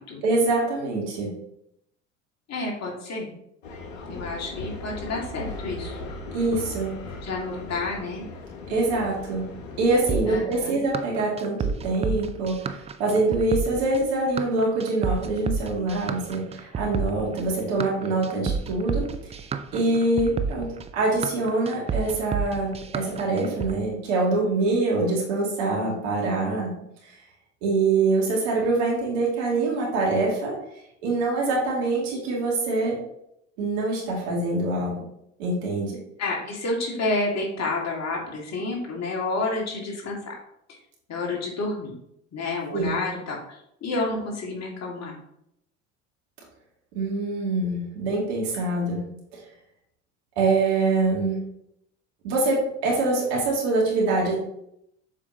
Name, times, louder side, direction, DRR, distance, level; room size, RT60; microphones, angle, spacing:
voice 1, 0.2-1.3 6.3-7.0 8.7-9.4 9.8-19.4 19.7-26.7 27.6-30.6 31.0-32.9 33.6-34.9 35.4-36.0 42.7-42.9 46.9-49.0 49.3-49.4 50.4-51.5 52.2-54.3, right 3 dB, 65° right, -3 dB, 2.6 m, -24 dB
voice 2, 2.5-3.3 4.1-6.0 7.2-8.2 10.3-10.8 36.2-40.4 40.7-40.8 41.1-42.0 42.3-45.1, left 2 dB, 40° left, -1 dB, 2.2 m, -30 dB
sound 1, 3.6-10.2, left 2 dB, 80° left, 1.1 m, -38 dB
sound 2, 10.1-23.7, right 5 dB, 15° right, 0.4 m, -30 dB
7.4 x 5.2 x 2.9 m, 0.76 s
hypercardioid pair, 65°, 39 cm